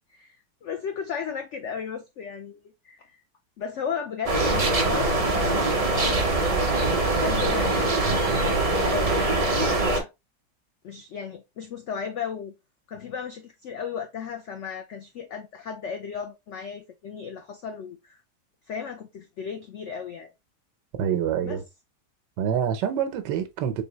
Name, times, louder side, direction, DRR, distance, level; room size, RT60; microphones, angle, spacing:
voice 1, 0.1-3.2 3.6-6.5 7.0-8.1 8.4-10.1 10.8-12.5 12.9-18.2 18.7-20.3 21.4-21.6, left 7 dB, 85° left, 0.6 m, -35 dB
sound 1, 4.3-10.0, right 2 dB, 30° right, 0.7 m, -23 dB
voice 2, 21.0-21.6 22.4-23.8, right 9 dB, 85° right, 1.4 m, -26 dB
4.0 x 3.4 x 2.9 m
omnidirectional pair, 1.9 m